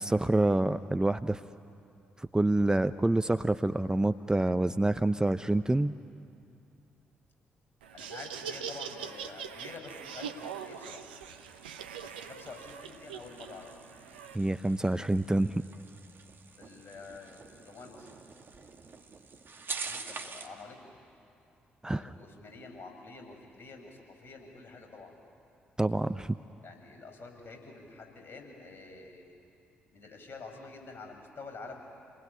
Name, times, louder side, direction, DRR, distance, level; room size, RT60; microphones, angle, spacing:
voice 1, 0.0-1.4 2.2-5.9 14.3-15.6 21.8-22.1 25.8-26.4, right 2 dB, 15° right, 12 dB, 0.7 m, -27 dB
Laughter, 7.8-14.4, right 7 dB, 85° right, 0.8 m, -42 dB
voice 2, 7.9-11.0 12.0-13.7 16.6-18.2 19.8-20.8 21.9-25.1 26.6-29.3 29.9-31.8, left 3 dB, 45° left, 3 dB, 6.1 m, -48 dB
sound 1, 10.1-20.6, right 4 dB, 45° right, 1.9 m, -47 dB
28.0 x 20.5 x 9.9 m, 2.5 s
figure-of-eight pair, 40°, 5 cm